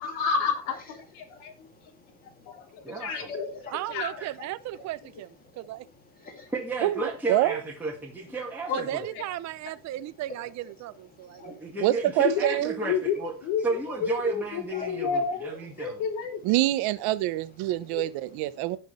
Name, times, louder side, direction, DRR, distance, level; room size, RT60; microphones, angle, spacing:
voice 1, 0.0-1.5 2.5-4.2 8.7-8.8 12.3-12.5 12.8-15.5 15.8-16.4 17.9-18.0, left 6 dB, 75° left, 3.3 m, -30 dB
voice 2, 1.3-2.9 4.4-4.5 5.5-5.6 6.2-6.5 11.1-11.8 14.7-14.9 15.8-15.9 18.5-18.7, left 4 dB, 20° left, 2.8 m, -47 dB
voice 3, 2.8-3.3 4.2-4.3 6.5-9.0 11.5-13.3 13.6-15.9, right 3 dB, 5° right, 1.8 m, -33 dB
voice 4, 3.7-5.9 8.7-11.6, right 14 dB, 40° right, 0.6 m, -36 dB
voice 5, 7.3-7.6 11.8-12.8 16.4-18.8, right 15 dB, 60° right, 1.0 m, -25 dB
17.5 x 6.2 x 3.2 m
cardioid pair, 160°, 43 cm